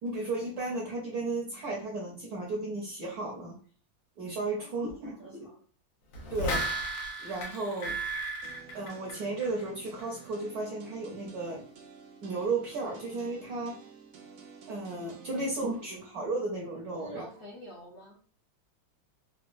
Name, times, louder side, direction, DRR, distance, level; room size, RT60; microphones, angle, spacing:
voice 1, 0.0-3.6 4.2-5.5 6.3-6.7 7.2-8.0 8.7-11.6 12.2-13.9 14.7-17.3, right 3 dB, 65° right, -2 dB, 1.0 m, -34 dB
voice 2, 4.6-5.6 15.3-15.7 17.0-18.2, equal, 70° left, -5 dB, 0.6 m, -49 dB
sound 1, 6.1-9.7 10.0-10.1, right 1 dB, 90° left, 1.7 m, -34 dB
sound 2, 8.4-16.0, right 5 dB, 85° right, 0.7 m, -51 dB
4.0 x 2.2 x 2.5 m, 0.42 s
omnidirectional pair, 2.3 m